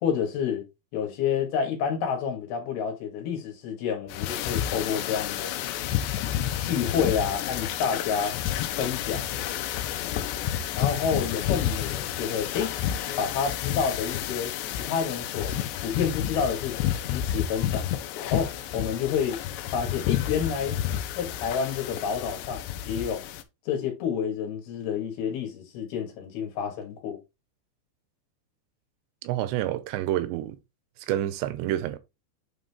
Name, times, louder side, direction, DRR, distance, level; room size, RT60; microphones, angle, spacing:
voice 1, 0.0-0.6 0.9-5.5 6.2-6.3 6.6-8.4 8.8-9.2 10.7-12.7 13.2-15.5 15.8-19.4 19.7-20.8 21.2-23.2 23.7-27.2, left 7 dB, 65° left, 3.6 m, -29 dB
sound 1, 4.1-23.4, left 11 dB, 90° left, 2.9 m, -30 dB
voice 2, 29.2-30.6 31.0-32.0, right 13 dB, 85° right, 2.9 m, -28 dB
8.9 x 3.8 x 3.6 m
omnidirectional pair, 5.0 m